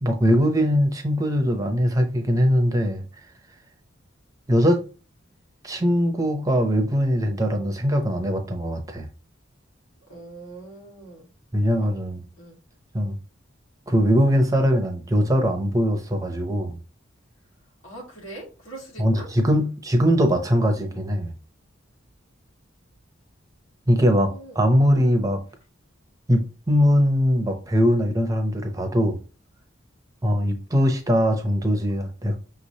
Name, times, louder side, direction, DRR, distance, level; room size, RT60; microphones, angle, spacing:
voice 1, 0.0-3.0 4.5-4.8 5.6-9.1 11.5-12.2 12.9-13.2 13.9-16.8 19.0-21.3 23.9-24.3 24.5-25.4 26.3-26.4 26.7-29.2 30.2-32.4, equal, 15° right, 0.7 m, -21 dB
voice 2, 10.1-11.3 11.7-11.9 12.4-12.6 17.8-19.3 24.1-24.6, right 2 dB, 80° left, 1.8 m, -42 dB
5.8 x 3.1 x 2.7 m
head